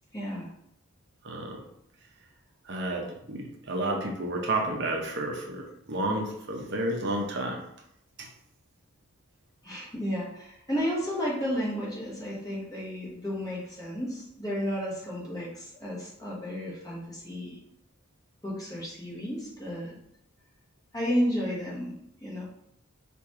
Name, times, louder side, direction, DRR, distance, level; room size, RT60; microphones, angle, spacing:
voice 1, 0.1-0.5 9.6-17.6 18.4-19.9 20.9-21.9 22.2-22.4, equal, 15° left, -6 dB, 1.2 m, -32 dB
voice 2, 1.2-1.6 2.7-7.6 8.2-8.3, right 2 dB, 55° right, 1 dB, 0.7 m, -31 dB
4.6 x 2.6 x 3.6 m, 0.76 s
head